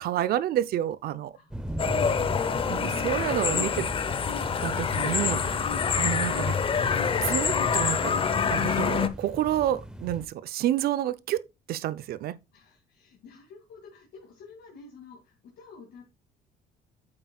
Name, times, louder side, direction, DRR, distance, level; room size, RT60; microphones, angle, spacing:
voice 1, 0.0-1.3 2.7-3.9 4.6-6.6 7.2-8.1 8.5-12.4, right 12 dB, 65° right, 0.6 m, -29 dB
voice 2, 1.3-1.7 5.5-5.8 12.5-16.1, left 4 dB, 70° left, 2.4 m, -50 dB
sound 1, 1.5-10.3, right 1 dB, 5° right, 0.8 m, -39 dB
sound 2, 1.8-9.1, left 6 dB, 30° left, 0.7 m, -26 dB
8.7 x 7.7 x 2.3 m
cardioid pair, 110°, 17 cm